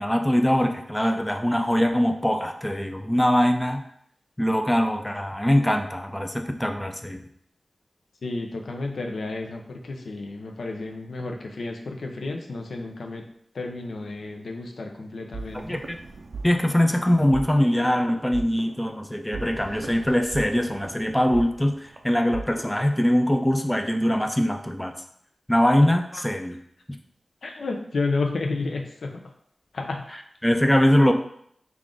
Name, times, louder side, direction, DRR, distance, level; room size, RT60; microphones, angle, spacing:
voice 1, 0.0-3.8 4.4-7.2 15.5-16.0 16.4-24.9 25.5-26.6 30.1-31.1, equal, 10° left, 5 dB, 0.3 m, -22 dB
voice 2, 8.2-13.3 13.5-15.8 26.1-26.2 27.4-29.2 29.7-30.0, left 3 dB, 90° left, 2 dB, 0.5 m, -31 dB
sound 1, 15.3-22.9, right 3 dB, 70° right, 0.4 m, -39 dB
3.4 x 2.4 x 3.7 m, 0.68 s
wide cardioid pair, 75°, 0 cm